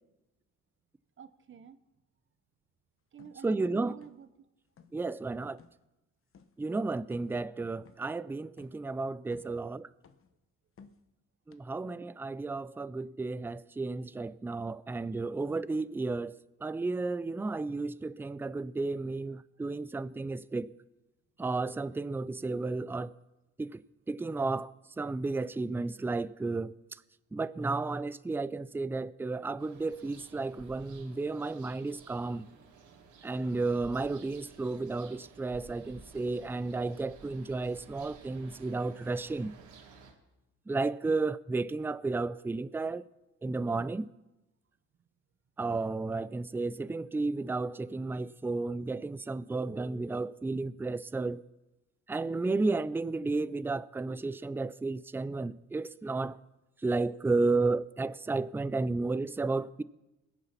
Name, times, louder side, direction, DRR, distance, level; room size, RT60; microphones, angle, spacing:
voice 1, 1.2-1.8 3.1-4.5 32.6-32.7, right 7 dB, 40° right, 0.7 m, -50 dB
sound 1, 3.2-3.4 4.0-4.4 4.7-5.0 5.6-5.8 6.3-6.6 7.1-7.4 7.8-8.1 8.6-8.8 9.2-9.7 10.0-10.4 10.8-11.1 11.5-11.6, left 6 dB, 45° left, 1.0 m, -57 dB
voice 2, 3.4-3.9 4.9-5.6 6.6-9.9 11.5-20.7 21.4-23.1 23.6-23.8 24.1-24.7 25.0-26.7 27.3-32.5 33.2-39.5 40.7-43.1 43.4-44.1 45.6-51.4 52.1-56.4 56.8-59.8, right 3 dB, 5° right, 0.4 m, -33 dB
sound 2, 29.6-40.1, right 5 dB, 90° right, 2.2 m, -54 dB
21.0 x 7.0 x 5.9 m
cardioid pair, 90°, 30 cm